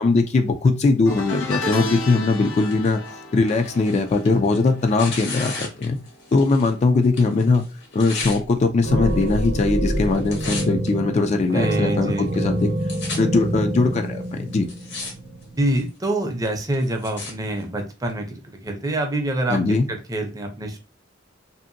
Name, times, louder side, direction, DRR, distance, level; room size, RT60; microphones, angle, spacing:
voice 1, 0.0-3.0 3.3-6.0 6.3-7.6 7.9-12.7 13.2-14.7 19.5-19.9, left 3 dB, 35° left, 5 dB, 0.3 m, -20 dB
sound 1, 1.1-6.5 6.7-7.1 8.3-8.4, left 2 dB, 90° left, 0.8 m, -33 dB
Tearing, 1.3-6.8 7.0-8.4 9.1-9.6 9.9-10.9 11.5-11.6 12.3-12.4 12.6-13.2 13.9-14.0 14.5-15.1 15.4-15.9 16.4-17.3 18.1-18.2, left 3 dB, 65° left, 1.0 m, -35 dB
sound 2, 8.2-8.6 8.8-15.6, right 1 dB, 65° right, 0.6 m, -26 dB
voice 2, 11.5-12.3 15.6-20.8, right 1 dB, 20° right, 3 dB, 0.5 m, -26 dB
2.7 x 2.5 x 2.5 m, 0.32 s
head